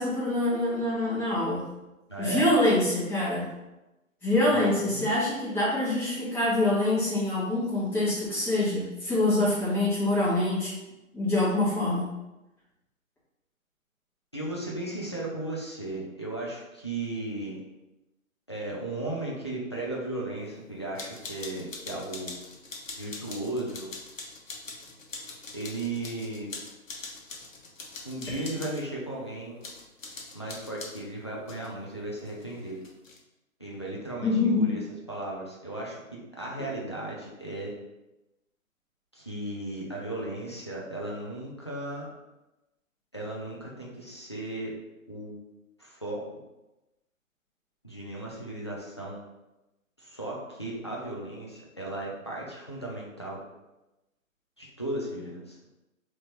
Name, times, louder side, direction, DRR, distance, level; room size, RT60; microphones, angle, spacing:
voice 1, 0.0-1.6 2.2-3.5 4.2-10.7 11.1-12.0 34.2-34.7, left 2 dB, 5° left, -12 dB, 1.2 m, -25 dB
voice 2, 2.1-2.5 4.5-5.1 14.3-17.6 18.5-22.4 22.9-23.9 25.5-26.5 28.0-29.6 30.3-32.8 33.6-34.8 35.1-36.0 36.4-37.7 39.1-42.1 43.1-44.7 45.1-45.4 45.8-46.2 47.8-49.2 50.0-53.4 54.6-55.6, right 2 dB, 20° left, -4 dB, 0.4 m, -35 dB
sound 1, 21.0-28.9 29.6-31.0 31.5-31.7 32.2-33.2, left 3 dB, 70° left, 1.0 m, -43 dB
4.6 x 2.9 x 3.1 m, 0.99 s
figure-of-eight pair, 140°, 41 cm